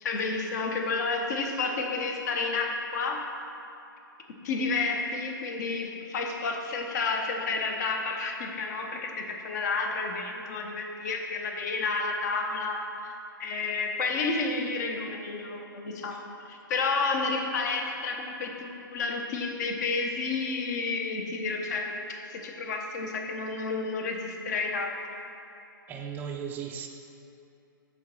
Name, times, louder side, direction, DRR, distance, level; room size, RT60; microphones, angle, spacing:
voice 1, 0.0-3.2 4.4-12.8 13.4-16.2 16.5-21.9 22.3-25.2, left 4 dB, 50° left, 2 dB, 0.8 m, -30 dB
voice 2, 25.9-26.9, right 7 dB, 15° right, 2 dB, 0.4 m, -36 dB
7.1 x 3.0 x 5.4 m, 2.7 s
hypercardioid pair, 135°, 12 cm